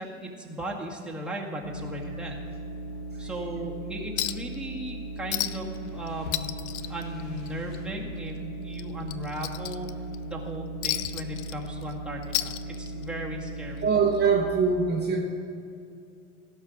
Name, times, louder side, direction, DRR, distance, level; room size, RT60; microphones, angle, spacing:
voice 1, 0.0-2.4 3.2-6.6 6.9-9.9 10.2-13.9, right 1 dB, ahead, -3 dB, 1.9 m, -37 dB
sound 1, 1.6-14.5, right 2 dB, 40° left, 2.8 m, -38 dB
Chink clink, 4.2-4.5 4.8-4.9 5.3-5.8 6.1-7.8 8.1-8.3 8.7-10.2 10.8-11.9 12.2-13.1 14.2-14.3, left 15 dB, 60° left, 0.5 m, -32 dB
voice 2, 13.8-15.2, right 5 dB, 25° right, -1 dB, 1.3 m, -23 dB
16.5 x 5.6 x 5.1 m, 2.5 s
figure-of-eight pair, 70°, 38 cm